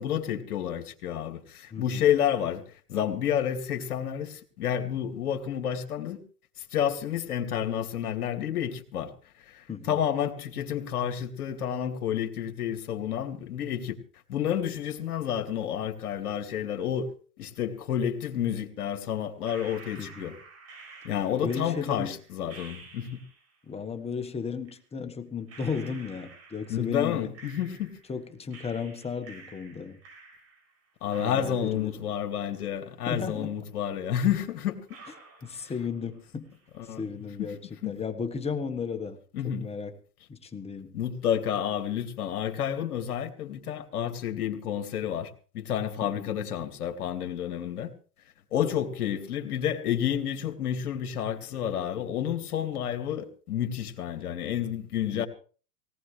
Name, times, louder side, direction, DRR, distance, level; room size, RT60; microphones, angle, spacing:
voice 1, 0.0-2.6 2.9-6.2 6.6-9.1 9.4-14.0 14.3-17.1 17.4-20.4 21.0-23.2 26.7-27.9 31.0-34.8 36.8-37.0 37.4-37.5 37.8-37.9 39.3-39.7 40.9-47.9 48.5-55.3, left 9 dB, 70° left, 2.5 m, -30 dB
voice 2, 1.7-2.1 9.7-10.0 20.0-20.4 21.4-22.2 23.6-27.3 28.1-30.0 31.2-32.0 33.1-33.5 35.4-36.5 37.0-39.2 39.4-40.0 40.3-41.0 46.0-46.3 55.1-55.2, left 5 dB, 15° left, 1.5 m, -35 dB
sound 1, 19.4-23.6 24.7-24.8 25.5-28.2 28.5-30.8 31.1-33.2 33.5-33.6 34.2-34.3 34.9-36.2 36.5-37.0, right 3 dB, 30° right, 7.4 m, -51 dB
19.5 x 18.5 x 3.4 m
hypercardioid pair, 125°, 46 cm